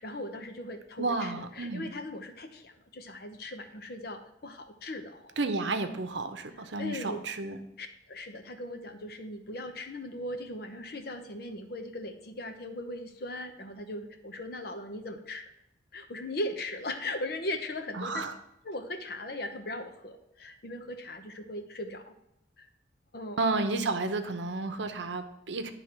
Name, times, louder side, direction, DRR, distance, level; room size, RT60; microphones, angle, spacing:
voice 1, 0.0-5.3 6.8-7.2 7.8-15.5 15.9-18.3 18.6-22.1 22.6-22.7 23.1-23.4, left 1 dB, 55° left, 7 dB, 0.8 m, -38 dB
voice 2, 1.0-1.8 5.4-7.6 17.9-18.3 23.4-25.7, right 3 dB, 70° right, 8 dB, 0.7 m, -31 dB
10.5 x 3.6 x 5.9 m, 0.86 s
head